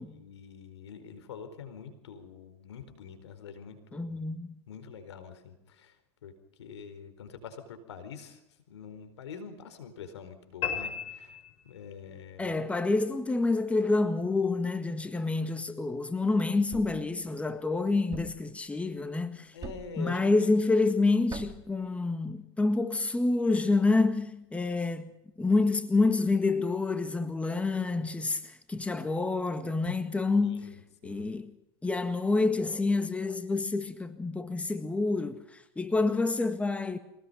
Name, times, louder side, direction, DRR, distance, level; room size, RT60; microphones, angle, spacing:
voice 1, 0.1-4.2 4.7-6.0 6.2-6.3 6.6-8.4 8.7-11.4 11.6-12.6 19.5-20.5 29.8-30.0 30.4-31.3, left 6 dB, 85° left, 4.4 m, -45 dB
voice 2, 3.9-4.6 12.4-19.5 20.0-25.1 25.4-31.5 31.8-37.0, left 3 dB, 10° left, 1.7 m, -28 dB
sound 1, 10.6-12.1, left 8 dB, 45° left, 6.0 m, -35 dB
Thump thud, 16.7-17.1 18.1-18.5 19.6-20.0 21.3-21.7, right 5 dB, 30° right, 2.4 m, -41 dB
24.5 x 19.0 x 5.5 m
hypercardioid pair, 110°, 14 cm